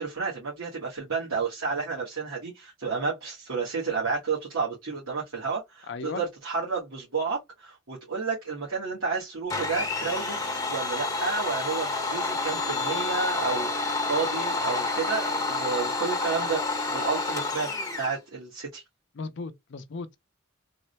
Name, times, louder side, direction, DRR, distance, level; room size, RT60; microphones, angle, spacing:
voice 1, 0.0-10.4 10.7-18.8, right 4 dB, 90° right, 1.3 m, -31 dB
voice 2, 5.9-6.2 19.2-20.2, left 4 dB, 60° left, 0.5 m, -36 dB
Domestic sounds home sounds, 9.5-18.2, left 3 dB, 15° left, 1.0 m, -29 dB
3.5 x 2.2 x 2.8 m
head